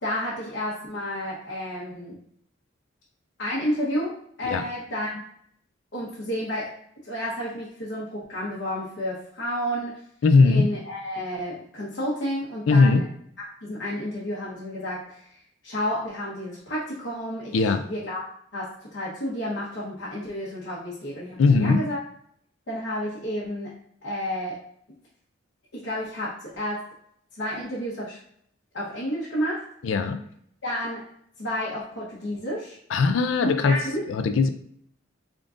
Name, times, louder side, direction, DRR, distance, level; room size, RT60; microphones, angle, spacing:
voice 1, 0.0-2.1 3.4-4.1 4.4-5.2 5.9-6.7 7.0-10.0 10.4-13.0 13.4-15.3 15.6-18.2 18.5-22.0 22.7-23.7 24.0-24.6 25.7-26.8 27.4-28.2 28.7-29.6 30.6-31.0 31.4-32.8 33.4-34.0, equal, 65° left, -8 dB, 1.0 m, -31 dB
voice 2, 10.2-10.7 12.7-13.0 17.5-17.8 21.4-21.8 29.8-30.2 32.9-33.8 34.1-34.5, left 4 dB, 85° left, 8 dB, 0.4 m, -19 dB
3.7 x 2.5 x 3.7 m, 0.67 s
head